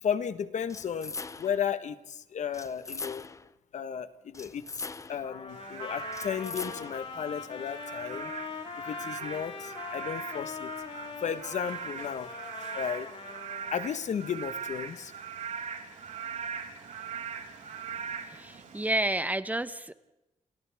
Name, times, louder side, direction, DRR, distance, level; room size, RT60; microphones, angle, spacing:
voice 1, 0.0-3.2 3.7-4.8 5.1-8.3 8.8-10.7 11.2-12.3 12.7-13.1 13.7-15.1, left 7 dB, 65° left, 12 dB, 1.3 m, -34 dB
sound 1, 0.7-1.7 2.5-3.5 4.3-5.3 6.1-7.1, left 4 dB, 25° left, 0.7 m, -41 dB
Trumpet, 5.2-13.8, left 5 dB, 50° left, 4.3 m, -41 dB
Frog / Rain, 5.5-19.0, right 6 dB, 75° right, 4.4 m, -41 dB
voice 2, 18.3-19.9, right 1 dB, 10° right, 13 dB, 0.9 m, -30 dB
29.5 x 29.0 x 3.5 m, 0.92 s
wide cardioid pair, 135°, 13 cm